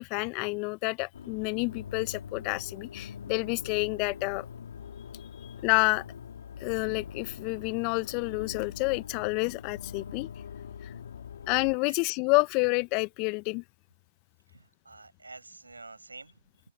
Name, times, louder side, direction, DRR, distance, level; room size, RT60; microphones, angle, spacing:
voice 1, 0.0-4.4 5.6-6.0 6.6-10.3 11.5-13.6, left 30 dB, 35° left, 0.9 m, -29 dB
sound 1, 1.1-11.8, left 8 dB, 65° left, 2.2 m, -43 dB
voice 2, 14.5-16.7, right 3 dB, 85° right, 6.3 m, -49 dB
open air
figure-of-eight pair, 115°, 0 cm